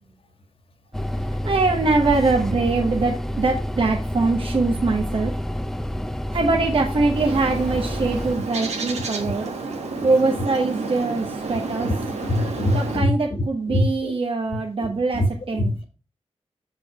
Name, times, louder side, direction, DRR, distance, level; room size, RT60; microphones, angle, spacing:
sound 1, 0.9-8.4, equal, 5° left, 0.5 m, -28 dB
voice 1, 1.4-5.3 6.3-9.5 10.0-11.9 12.7-15.7, right 3 dB, 55° right, 1.1 m, -23 dB
Bird, 7.1-13.0, right 3 dB, 85° right, 1.6 m, -31 dB
voice 2, 12.2-13.1 13.7-14.1 14.8-14.9 15.1-15.3 15.5-15.9, left 1 dB, 55° left, 1.6 m, -23 dB
7.5 x 5.2 x 4.8 m
wide cardioid pair, 85°, 11 cm